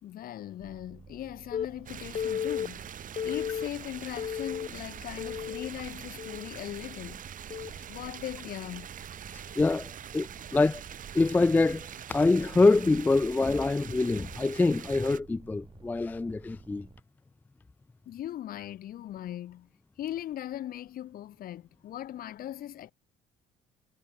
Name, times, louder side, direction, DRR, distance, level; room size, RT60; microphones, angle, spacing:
voice 1, 0.0-7.3 7.9-8.9 18.1-19.7 20.0-22.9, left 12 dB, 60° left, 1.2 m, -39 dB
sound 1, 0.6-17.0, right 5 dB, 30° right, 3.0 m, -53 dB
Telephone, 1.5-1.7 2.1-2.7 3.2-3.7 4.2-4.7 5.2-5.7 6.2-6.5 7.5-7.7, left 8 dB, 40° left, 0.7 m, -33 dB
sound 2, 1.9-15.2, right 9 dB, 50° right, 4.0 m, -44 dB
voice 2, 9.6-10.8 11.1-16.9, left 3 dB, 10° left, 0.3 m, -25 dB
cardioid pair, 110°, 17 cm